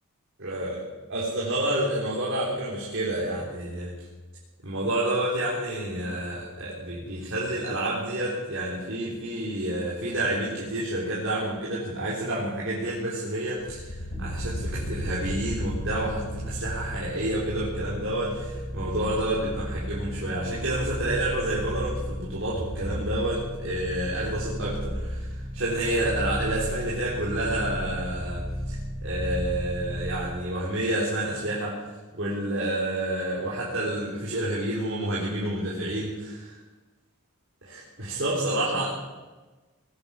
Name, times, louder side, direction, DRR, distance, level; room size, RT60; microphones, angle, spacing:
voice 1, 0.4-0.8 1.1-3.9 4.6-31.9 32.1-36.6 37.6-38.9, right 1 dB, 60° right, -6 dB, 3.7 m, -29 dB
sound 1, 13.6-18.8, equal, 40° left, 0.8 m, -36 dB
sound 2, 14.1-30.3, equal, 20° right, 3.8 m, -34 dB
19.5 x 10.0 x 7.1 m, 1.2 s
head